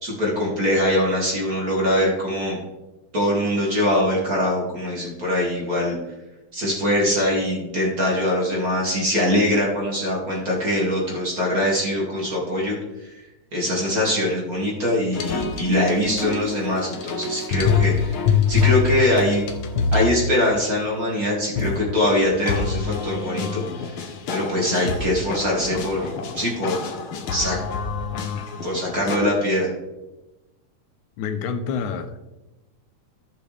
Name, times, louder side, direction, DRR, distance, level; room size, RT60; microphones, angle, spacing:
voice 1, 0.0-2.6 3.1-6.0 6.5-13.1 13.5-19.4 19.9-26.9 27.3-27.6 28.6-29.7, left 1 dB, 30° right, -3 dB, 2.4 m, -23 dB
sound 1, 15.1-20.1 21.6-29.2, left 6 dB, 65° left, 1.4 m, -26 dB
voice 2, 31.2-32.3, left 6 dB, 90° left, 8 dB, 2.2 m, -28 dB
14.5 x 5.9 x 3.4 m, 1.0 s
omnidirectional pair, 3.3 m